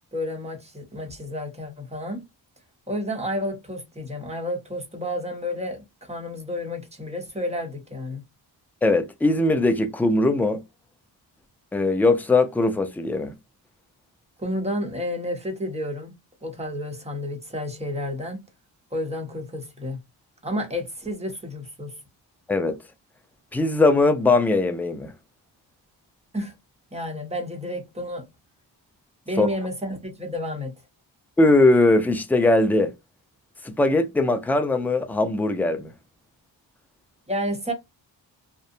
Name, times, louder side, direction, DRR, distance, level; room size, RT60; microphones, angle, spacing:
voice 1, 0.0-2.2 2.9-8.2 14.4-16.1 16.4-18.4 18.9-20.0 20.4-21.9 26.3-26.5 26.9-28.2 29.3-30.7 37.3-37.7, left 1 dB, 15° right, 0.8 m, -31 dB
voice 2, 8.8-10.6 11.7-13.3 22.5-22.8 23.5-25.1 29.4-29.5 31.4-32.9 33.6-35.9, left 2 dB, 5° left, 0.3 m, -20 dB
2.5 x 2.0 x 2.6 m
wide cardioid pair, 80°, 45 cm